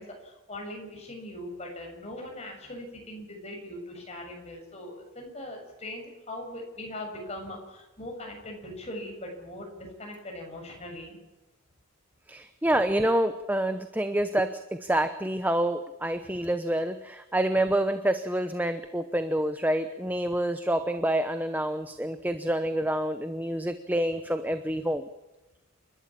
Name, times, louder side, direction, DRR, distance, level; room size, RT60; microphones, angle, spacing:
voice 1, 0.0-11.2, left 1 dB, 30° left, 1 dB, 7.2 m, -40 dB
voice 2, 12.3-25.1, right 1 dB, 10° right, 9 dB, 0.9 m, -27 dB
29.5 x 13.0 x 8.6 m, 1.1 s
head